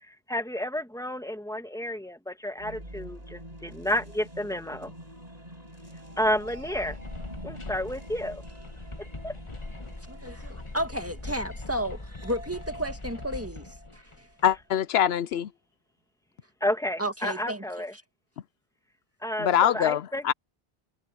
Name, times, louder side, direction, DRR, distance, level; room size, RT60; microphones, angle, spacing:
voice 1, 0.1-4.9 6.2-7.0 7.4-8.4 9.2-9.4 16.6-17.9 19.2-20.3, left 1 dB, 5° left, 1.6 m, -31 dB
sound 1, 2.6-14.4, right 1 dB, 40° right, 7.4 m, -47 dB
sound 2, 6.1-14.6, left 2 dB, 30° left, 1.3 m, -41 dB
voice 2, 10.1-13.7 13.9-14.0 17.0-17.6, equal, 15° right, 1.9 m, -32 dB
voice 3, 14.4-15.5 19.4-20.3, left 10 dB, 75° left, 0.8 m, -24 dB
omnidirectional pair, 1.1 m